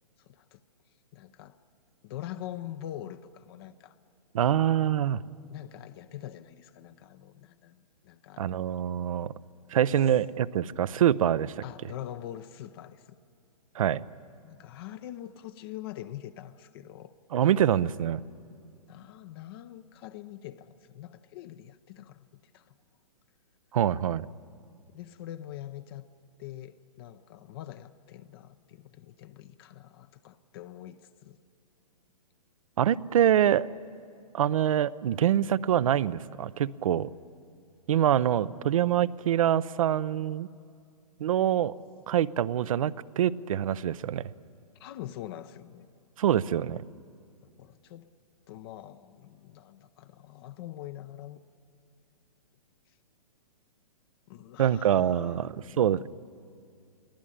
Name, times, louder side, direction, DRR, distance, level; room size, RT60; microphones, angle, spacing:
voice 1, 0.2-0.6 1.1-1.6 2.0-4.0 5.5-7.8 8.0-8.6 11.6-13.2 14.4-17.1 18.9-22.8 24.9-26.1 26.4-31.4 44.8-45.9 47.4-48.1 48.5-51.4 52.9-53.0 54.3-56.1, left 12 dB, 40° left, 11 dB, 0.7 m, -44 dB
voice 2, 4.3-5.2 8.4-9.3 9.7-11.5 13.8-14.0 17.3-18.2 23.7-24.3 32.8-33.7 34.3-37.1 37.9-40.5 41.2-41.7 42.1-44.3 46.2-46.8 54.6-56.1, right 10 dB, 60° right, 19 dB, 0.6 m, -25 dB
23.0 x 16.5 x 10.0 m, 2.3 s
hypercardioid pair, 125°, 20 cm